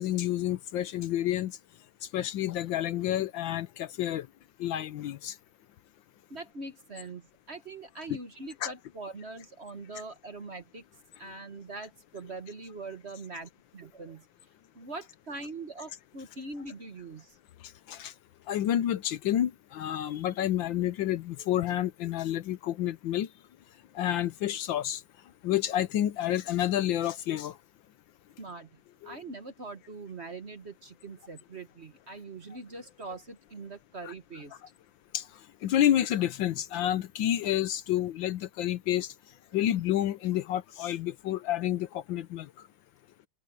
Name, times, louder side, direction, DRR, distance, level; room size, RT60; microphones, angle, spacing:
voice 1, 0.0-1.5 2.1-4.3 4.6-5.3 8.6-8.7 17.9-18.1 18.5-23.3 23.9-25.0 25.4-27.5 29.0-29.2 34.0-34.1 35.1-35.2 35.6-39.1 39.5-42.5, left 12 dB, 70° left, 1.4 m, -29 dB
voice 2, 6.3-10.8 11.2-14.2 14.7-17.4 28.4-28.7 29.0-34.6, right 3 dB, 35° right, 1.4 m, -42 dB
open air
omnidirectional pair, 2.3 m